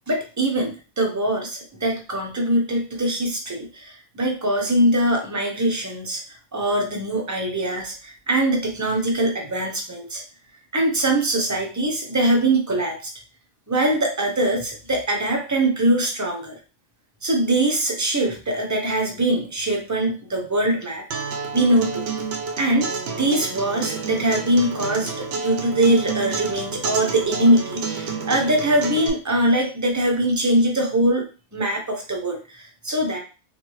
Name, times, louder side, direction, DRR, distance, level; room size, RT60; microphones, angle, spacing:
voice 1, 0.1-6.2 6.5-10.2 10.7-13.1 13.7-16.6 17.2-22.0 22.6-31.2 31.5-33.2, right 1 dB, 25° right, 2 dB, 0.4 m, -22 dB
Acoustic guitar, 21.1-29.1, right 4 dB, 60° right, 0.7 m, -30 dB
3.7 x 2.5 x 3.0 m, 0.34 s
omnidirectional pair, 1.5 m